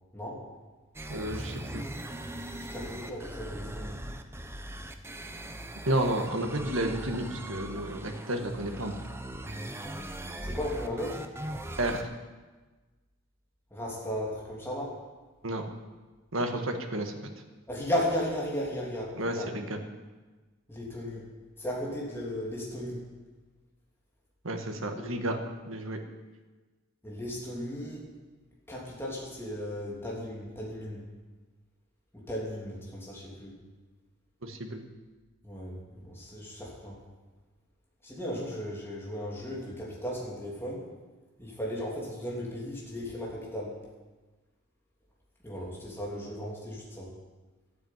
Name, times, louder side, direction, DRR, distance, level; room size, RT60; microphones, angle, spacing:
voice 1, 0.1-0.4 2.6-4.0 6.6-6.8 10.4-11.2 13.7-15.0 17.7-19.5 20.7-21.3 21.6-23.0 25.0-25.1 27.0-28.0 28.7-31.1 32.1-33.5 35.4-37.0 38.0-40.9 41.4-43.8 45.4-47.1, equal, 10° left, -4 dB, 3.1 m, -35 dB
sound 1, 0.9-12.0, right 1 dB, 10° right, 0.8 m, -40 dB
voice 2, 1.1-1.8 5.9-8.9 11.8-12.1 15.4-15.6 16.3-17.1 19.2-19.8 24.4-25.4 25.7-26.0 34.4-34.8, right 1 dB, 65° right, 4 dB, 1.7 m, -31 dB
12.5 x 8.6 x 9.4 m, 1.3 s
head